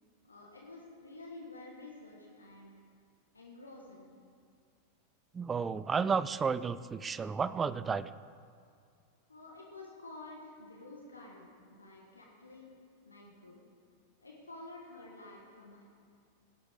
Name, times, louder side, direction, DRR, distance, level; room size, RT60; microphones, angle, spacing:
voice 1, 0.2-2.7 3.3-4.1 9.3-12.8 13.0-13.6 14.2-15.9, left 2 dB, 80° left, -2 dB, 1.5 m, -50 dB
voice 2, 5.3-8.1, right 5 dB, 20° right, 16 dB, 0.3 m, -32 dB
17.5 x 7.9 x 3.7 m, 2.3 s
figure-of-eight pair, 90°, 0 cm